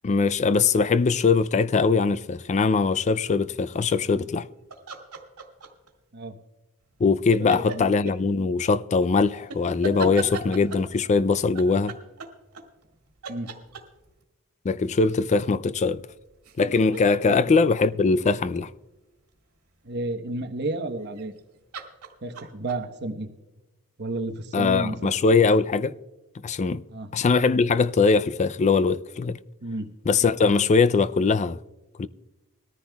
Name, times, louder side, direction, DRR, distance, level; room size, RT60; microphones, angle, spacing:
voice 1, 0.0-4.5 7.0-12.0 14.6-16.0 16.6-18.7 24.5-25.9 26.4-26.8 27.1-29.4 30.1-31.6 32.0-32.1, left 4 dB, 30° left, 0.3 m, -21 dB
sound 1, 4.7-5.9 7.3-8.2 9.5-10.9 11.6-13.0 13.2-14.2 16.0-18.6 21.0-21.4 21.7-22.8, right 3 dB, 75° right, 2.0 m, -36 dB
voice 2, 7.4-7.9 13.3-13.5 17.2-17.6 19.8-21.3 22.2-23.3 24.0-25.1 26.9-27.1 29.6-29.9, right 2 dB, 50° right, 1.0 m, -32 dB
21.5 x 14.0 x 2.3 m
head